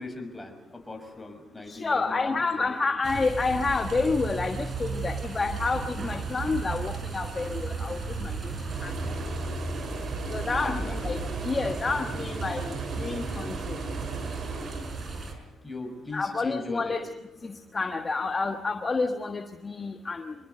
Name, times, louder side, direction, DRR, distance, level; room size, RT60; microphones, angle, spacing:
voice 1, 0.0-2.8 10.6-11.0 15.6-17.0, left 3 dB, 15° left, 4 dB, 5.6 m, -39 dB
voice 2, 1.7-8.5 8.8-8.9 10.3-13.8 16.1-17.1 17.4-20.3, left 3 dB, 30° left, 6 dB, 1.4 m, -29 dB
sound 1, 3.0-15.3, right 4 dB, 45° right, 5.2 m, -34 dB
sound 2, 8.7-15.4, right 3 dB, 60° right, 3.4 m, -38 dB
25.5 x 22.0 x 6.8 m, 1.0 s
cardioid pair, 90°, 0 cm